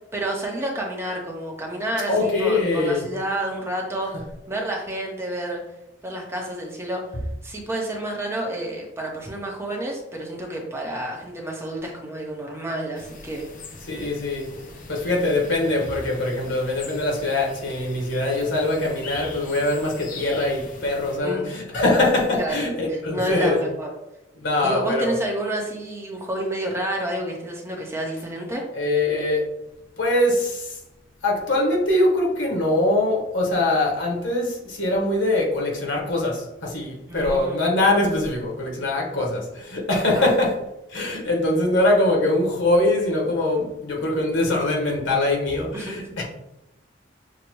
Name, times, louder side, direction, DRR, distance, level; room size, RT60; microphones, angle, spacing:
voice 1, 0.1-5.6 6.0-7.0 7.4-13.5 14.6-14.7 21.2-21.5 22.3-22.6 22.9-23.9 24.6-28.6 37.1-37.6 40.1-40.3 45.7-46.0, right 1 dB, 15° right, -1 dB, 0.8 m, -29 dB
voice 2, 2.1-3.0 13.9-14.6 14.9-23.6 24.4-25.2 28.7-29.5 30.0-30.8 31.2-40.6 40.9-46.2, left 2 dB, 85° left, -2 dB, 1.2 m, -23 dB
sound 1, 12.9-21.2, left 4 dB, 45° left, 0.5 m, -41 dB
6.3 x 2.1 x 3.0 m, 0.89 s
head